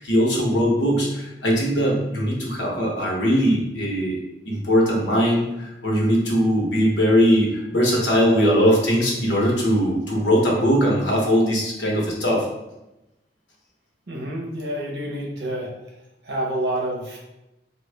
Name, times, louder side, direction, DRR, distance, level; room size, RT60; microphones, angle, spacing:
voice 1, 0.0-4.2 4.5-12.5, equal, 85° left, -2 dB, 0.9 m, -20 dB
voice 2, 14.1-15.7 16.2-17.2, right 1 dB, 70° right, -2 dB, 0.9 m, -28 dB
3.5 x 2.3 x 3.3 m, 0.95 s
head